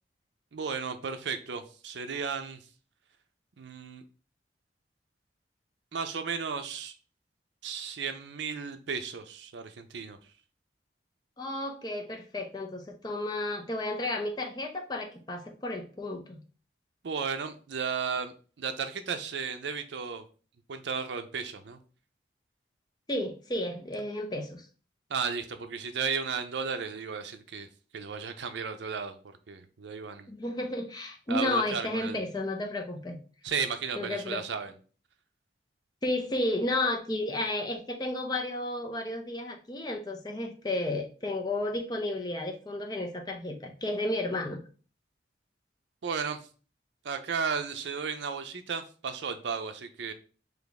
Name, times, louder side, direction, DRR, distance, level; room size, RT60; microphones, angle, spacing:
voice 1, 0.5-2.6 3.6-4.0 5.9-6.9 7.6-10.2 17.0-20.3 20.7-21.8 25.1-27.7 27.9-29.2 29.5-30.3 31.3-32.2 33.4-34.7 46.0-46.4 47.0-50.1, right 6 dB, 75° right, 8 dB, 0.5 m, -34 dB
voice 2, 11.4-16.4 23.1-24.7 30.3-33.2 34.0-34.4 36.0-44.6, left 1 dB, 20° left, 2 dB, 0.5 m, -32 dB
3.4 x 2.9 x 4.0 m, 0.38 s
head